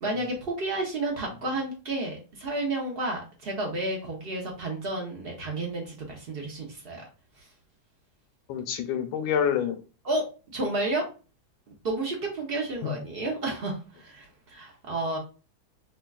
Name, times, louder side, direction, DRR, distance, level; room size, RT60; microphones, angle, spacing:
voice 1, 0.0-7.0 7.4-7.5 10.0-10.2 10.5-11.1 11.7-15.2, right 2 dB, 85° right, 0 dB, 0.5 m, -31 dB
voice 2, 8.5-9.8 12.8-12.9, left 8 dB, 80° left, 7 dB, 1.4 m, -27 dB
5.5 x 2.3 x 2.3 m, 0.33 s
omnidirectional pair, 2.2 m